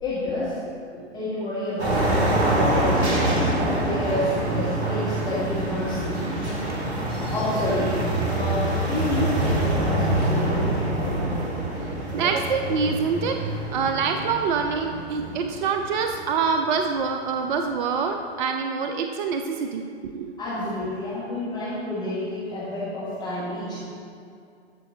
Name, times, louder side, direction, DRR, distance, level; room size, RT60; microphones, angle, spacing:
voice 1, 0.0-3.3 3.8-6.0 7.3-11.5 20.4-23.8, left 1 dB, 10° left, -9 dB, 1.2 m, -29 dB
sound 1, 1.8-16.6, right 1 dB, 70° right, 1.5 m, -25 dB
voice 2, 12.1-13.4 13.7-20.3, right 5 dB, 45° right, 5 dB, 0.4 m, -25 dB
12.5 x 4.4 x 2.7 m, 2.4 s
figure-of-eight pair, 110°, 34 cm